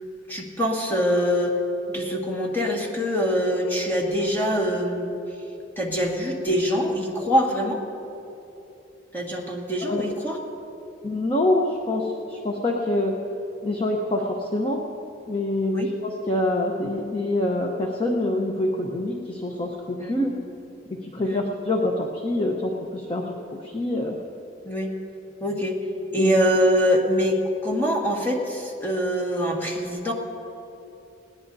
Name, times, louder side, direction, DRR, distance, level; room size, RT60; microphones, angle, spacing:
voice 1, 0.3-1.6 1.9-5.2 5.8-7.8 9.1-10.4 15.7-15.9 20.0-20.2 21.2-21.4 24.6-24.9 25.4-25.8 26.1-30.1, equal, 10° left, -1 dB, 1.7 m, -24 dB
voice 2, 11.0-13.1 13.6-14.8 15.3-20.3 21.0-24.2 26.1-26.4, left 1 dB, 30° left, 0 dB, 0.9 m, -26 dB
21.0 x 17.5 x 2.7 m, 2.9 s
head